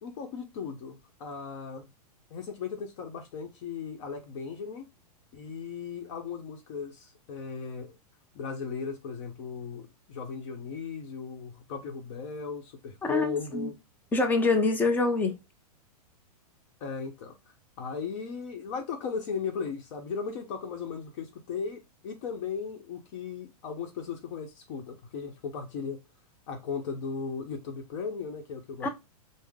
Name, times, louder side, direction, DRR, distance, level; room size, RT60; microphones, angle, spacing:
voice 1, 0.0-1.9 2.3-4.9 5.3-8.0 8.3-13.7 16.8-17.3 17.8-26.0 26.5-28.9, left 5 dB, 50° left, 0.9 m, -37 dB
voice 2, 13.0-13.7 14.1-15.4 28.8-28.9, left 3 dB, 10° left, 0.5 m, -25 dB
3.7 x 2.0 x 3.5 m
hypercardioid pair, 140°, 20 cm